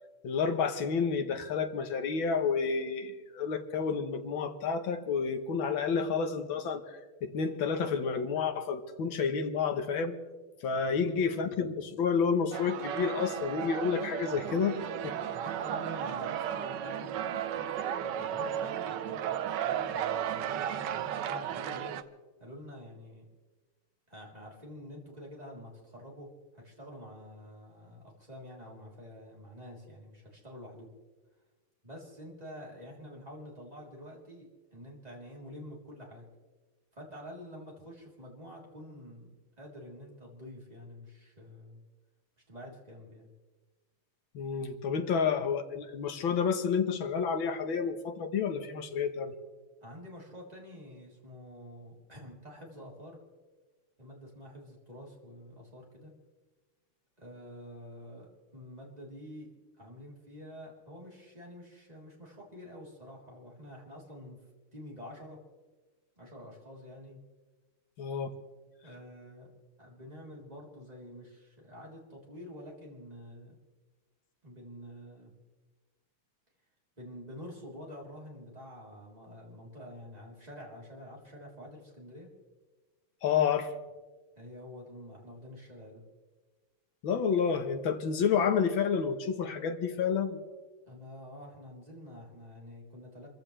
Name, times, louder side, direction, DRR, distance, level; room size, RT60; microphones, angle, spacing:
voice 1, 0.2-10.1 10.6-15.2 44.3-49.4 68.0-68.3 83.2-83.7 87.0-90.4, left 6 dB, 65° left, 7 dB, 1.9 m, -30 dB
voice 2, 10.7-11.2 15.3-22.0 22.4-23.2 24.1-30.9 31.8-36.3 36.9-41.8 42.5-43.3 49.8-53.2 54.0-56.1 57.2-59.5 59.8-64.4 64.7-65.4 66.2-67.2 68.8-69.5 69.8-73.6 74.4-75.3 77.0-82.3 84.4-86.0 90.8-93.3, equal, 15° right, -3 dB, 3.7 m, -48 dB
sound 1, 12.5-22.0, right 10 dB, 70° right, 1.2 m, -34 dB
27.0 x 15.0 x 3.3 m, 1.3 s
omnidirectional pair, 2.4 m